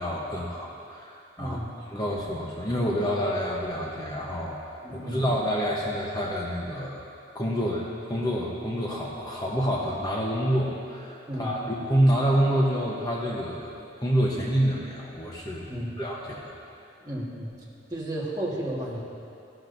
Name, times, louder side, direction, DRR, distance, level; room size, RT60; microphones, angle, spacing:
voice 1, 0.0-1.6 1.9-7.1 7.3-13.7 14.0-16.5, equal, 20° left, -4 dB, 0.9 m, -27 dB
voice 2, 1.4-1.7 4.8-5.2 7.6-7.7 11.3-11.7 15.7-16.0 17.0-17.5 17.9-19.0, right 1 dB, 20° right, -5 dB, 1.6 m, -33 dB
16.5 x 12.0 x 2.6 m, 2.6 s
head